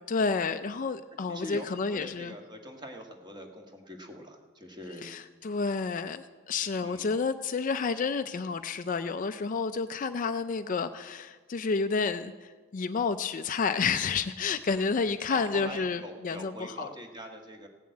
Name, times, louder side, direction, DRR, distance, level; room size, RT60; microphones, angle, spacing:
voice 1, 0.0-2.3 5.0-16.9, left 4 dB, 35° left, 10 dB, 0.4 m, -30 dB
voice 2, 1.3-5.1 6.8-7.2 15.3-17.7, equal, 20° right, 3 dB, 1.4 m, -43 dB
16.5 x 7.2 x 8.7 m, 1.4 s
head